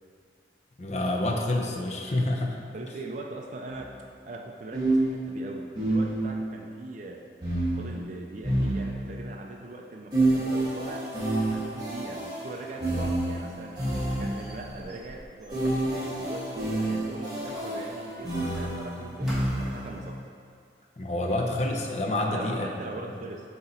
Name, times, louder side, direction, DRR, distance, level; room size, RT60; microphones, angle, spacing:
voice 1, 0.8-2.6 21.0-22.7, left 1 dB, 40° left, 1 dB, 0.6 m, -28 dB
voice 2, 2.7-3.9 4.2-7.2 7.8-11.0 11.5-13.7 14.0-19.3 19.6-20.2 22.3-23.4, right 2 dB, 45° right, 0 dB, 0.3 m, -41 dB
sound 1, 3.7-3.9 4.7-6.5 7.4-9.3 10.1-14.6 15.5-20.0, right 1 dB, 25° right, 1.4 m, -29 dB
Squeak, 13.4-17.0 17.4-19.0 19.3-19.8, equal, 5° right, 1.1 m, -47 dB
7.7 x 2.9 x 4.2 m, 2.2 s
head